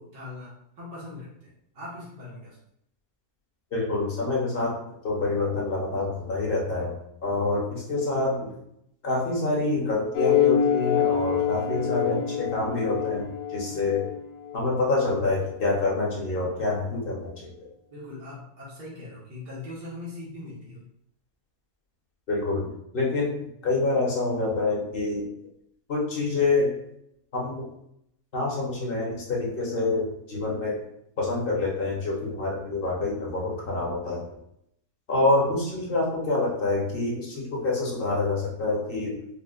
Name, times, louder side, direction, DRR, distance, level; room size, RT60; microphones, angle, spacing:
voice 1, 0.0-2.6 17.9-20.9, left 2 dB, 80° right, -8 dB, 1.7 m, -41 dB
voice 2, 3.7-4.8 5.0-6.9 7.2-8.5 9.0-14.1 14.5-17.7 22.3-23.3 23.6-25.3 25.9-26.7 27.3-27.7 28.3-30.8 31.2-34.2 35.1-39.2, left 2 dB, 45° left, -3 dB, 0.9 m, -26 dB
sound 1, 10.1-15.1, left 9 dB, 85° left, 1.2 m, -26 dB
4.9 x 2.1 x 2.4 m, 0.76 s
omnidirectional pair, 1.7 m